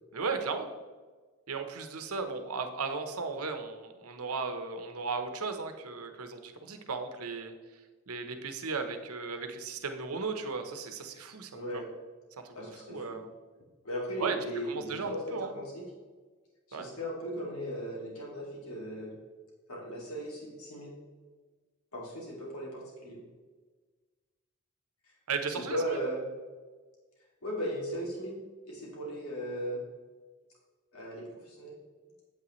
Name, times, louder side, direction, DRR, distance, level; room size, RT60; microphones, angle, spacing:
voice 1, 0.1-0.7 1.5-7.5 8.1-11.8 12.4-13.3 14.2-14.4 14.7-15.5 16.7-16.9 25.3-25.8, right 4 dB, 90° right, 7 dB, 0.9 m, -36 dB
voice 2, 11.5-11.9 12.5-13.2 13.8-15.8 16.7-19.1 19.7-20.9 21.9-23.2 25.5-26.2 27.4-28.4 28.6-29.8 30.9-31.8, equal, 80° left, -3 dB, 2.4 m, -37 dB
8.7 x 8.4 x 3.1 m, 1.4 s
head